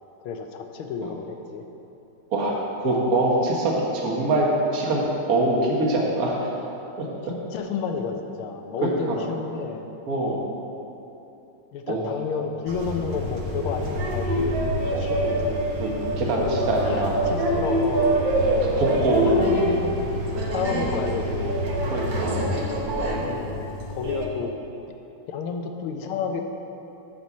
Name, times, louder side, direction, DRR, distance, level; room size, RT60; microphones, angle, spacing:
voice 1, 0.2-1.6 7.2-9.9 10.2-10.5 11.7-15.6 16.5-18.7 19.2-19.9 20.5-21.6 23.2-24.5 25.3-26.4, left 5 dB, 85° left, 5 dB, 1.6 m, -31 dB
voice 2, 2.3-4.5 4.7-6.5 7.0-7.1 8.8-9.2 10.1-10.4 11.9-12.1 14.9-15.0 15.8-15.9 16.2-17.2 18.3-19.4 21.9-22.4, right 2 dB, 50° right, -2 dB, 1.6 m, -24 dB
sound 1, 12.7-24.3, right 1 dB, 65° right, 1.7 m, -25 dB
9.6 x 4.6 x 7.1 m, 3.0 s
omnidirectional pair, 2.3 m